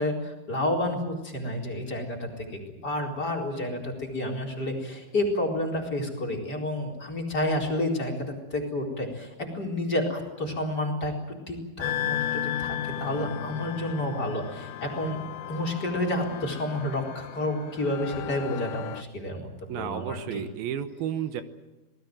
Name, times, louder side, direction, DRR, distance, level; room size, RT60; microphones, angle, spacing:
voice 1, 0.0-11.1 11.5-20.4, left 1 dB, 25° left, 0 dB, 4.5 m, -30 dB
sound 1, 11.8-19.0, left 10 dB, 70° left, 2.2 m, -34 dB
voice 2, 19.7-21.4, right 9 dB, 80° right, 11 dB, 3.0 m, -32 dB
26.5 x 19.5 x 7.7 m, 1.1 s
omnidirectional pair, 4.3 m